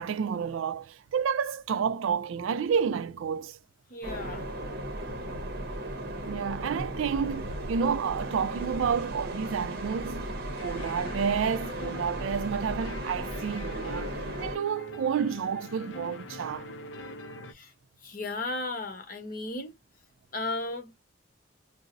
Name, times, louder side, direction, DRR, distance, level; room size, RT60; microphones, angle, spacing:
voice 1, 0.0-3.6 6.2-14.1 14.4-16.7, right 6 dB, 85° right, 0.4 m, -30 dB
voice 2, 3.9-4.5 17.5-17.7 18.0-19.7 20.3-21.0, left 2 dB, 45° left, 0.9 m, -35 dB
sound 1, 4.0-14.6, right 1 dB, 50° right, 0.6 m, -36 dB
sound 2, 10.6-17.5, left 3 dB, 70° left, 0.4 m, -44 dB
2.5 x 2.0 x 3.6 m
head